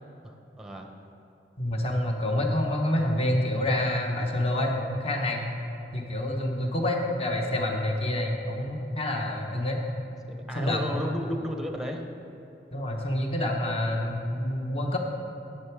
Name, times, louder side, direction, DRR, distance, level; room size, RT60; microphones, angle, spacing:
voice 1, 0.2-0.9 10.3-12.1, equal, 5° right, 3 dB, 0.7 m, -33 dB
voice 2, 1.6-5.4 5.9-9.8 10.5-11.1 12.7-15.0, left 1 dB, 35° left, 1 dB, 1.1 m, -27 dB
10.5 x 7.9 x 4.6 m, 2.9 s
head